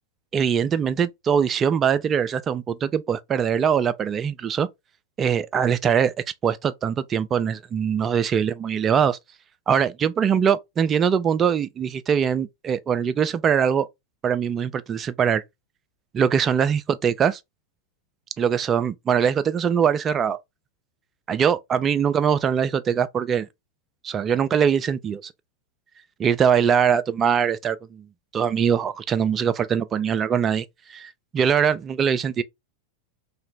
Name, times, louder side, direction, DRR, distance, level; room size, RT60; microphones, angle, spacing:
voice 1, 0.3-4.7 5.2-6.1 6.4-9.2 9.7-13.9 14.2-15.4 16.1-17.4 18.4-20.4 21.3-23.5 24.0-25.3 26.2-28.0 28.3-30.6 30.9-32.4, right 7 dB, 25° right, 0.3 m, -22 dB
2.8 x 2.5 x 3.1 m
figure-of-eight pair, 90°, 0 cm